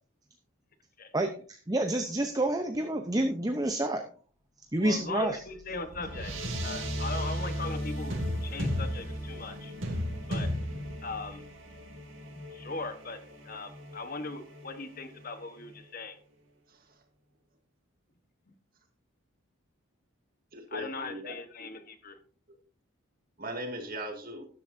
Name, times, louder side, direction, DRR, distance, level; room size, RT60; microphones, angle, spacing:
voice 1, 1.1-4.0 4.7-5.4, right 1 dB, 15° right, 5 dB, 0.7 m, -28 dB
voice 2, 4.8-6.3 6.6-9.7 10.3-10.5 11.0-11.4 12.5-13.2 13.4-16.2 20.7-22.2, left 3 dB, 40° left, 9 dB, 1.2 m, -39 dB
sound 1, 5.1-15.8, equal, 65° right, 2.3 m, -36 dB
voice 3, 20.5-21.3 23.4-24.5, right 1 dB, 40° right, 3 dB, 2.0 m, -38 dB
12.5 x 11.0 x 2.7 m, 0.41 s
head